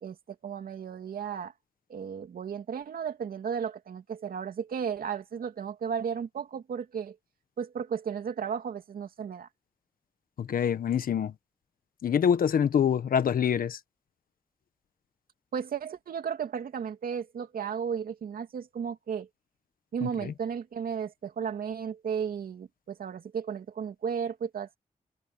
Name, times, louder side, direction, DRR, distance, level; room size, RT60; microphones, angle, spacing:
voice 1, 0.0-1.5 1.9-7.1 7.6-9.5 15.5-19.3 19.9-24.8, right 7 dB, 80° right, 2.7 m, -34 dB
voice 2, 10.4-11.3 12.0-13.8 20.0-20.3, left 8 dB, 80° left, 1.3 m, -25 dB
supercardioid pair, 40°, 15 cm